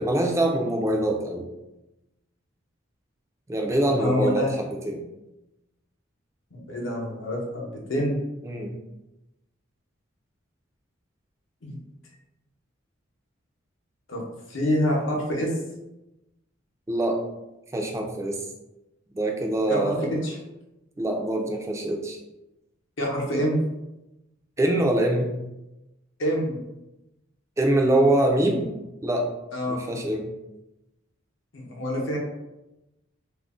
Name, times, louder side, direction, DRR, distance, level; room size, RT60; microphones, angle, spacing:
voice 1, 0.0-1.5 3.5-5.1 8.4-8.8 16.9-17.2 17.7-18.4 19.1-20.1 21.0-22.2 24.6-25.4 27.6-28.7 29.0-29.3 29.7-30.3, right 1 dB, 15° right, 2 dB, 0.3 m, -24 dB
voice 2, 3.9-4.5 6.5-8.2 11.6-11.8 14.1-14.2 14.5-15.5 19.7-20.4 23.0-23.6 26.2-26.6 29.5-29.8 31.5-32.2, equal, 70° left, -1 dB, 0.7 m, -26 dB
2.4 x 2.0 x 3.6 m, 0.96 s
head